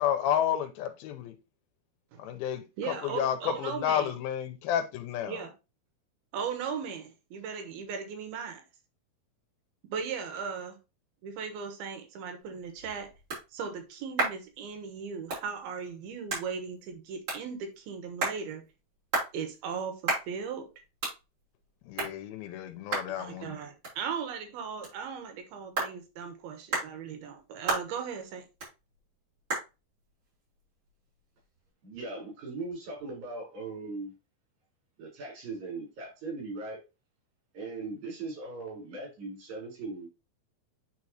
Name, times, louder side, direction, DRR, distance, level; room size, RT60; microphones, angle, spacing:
voice 1, 0.0-1.4 2.2-5.4 21.9-23.6, left 9 dB, 85° left, 2.5 m, -31 dB
voice 2, 2.8-4.1 5.3-5.5 6.3-8.6 9.9-10.8 11.2-13.1 13.5-18.6 19.3-20.7 23.2-28.5, right 6 dB, 85° right, 3.1 m, -37 dB
sound 1, 12.4-31.7, right 3 dB, 35° right, 4.8 m, -38 dB
voice 3, 31.8-34.1 35.0-36.8 37.5-40.1, right 3 dB, 65° right, 5.8 m, -39 dB
9.6 x 4.4 x 2.9 m
omnidirectional pair, 4.4 m